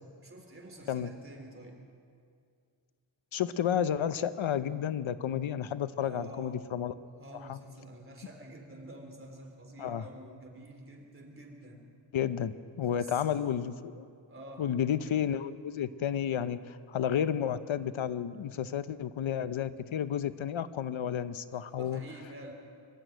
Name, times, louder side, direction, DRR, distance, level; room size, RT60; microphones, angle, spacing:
voice 1, 0.2-1.8 6.0-6.6 7.2-11.9 12.9-13.5 14.3-14.7 21.5-22.5, right 1 dB, 25° right, 2 dB, 3.5 m, -48 dB
voice 2, 3.3-6.9 7.5-7.6 9.8-10.0 12.1-14.0 14.6-22.0, left 9 dB, 80° left, 13 dB, 0.8 m, -31 dB
24.5 x 13.0 x 9.2 m, 2.3 s
wide cardioid pair, 165°, 47 cm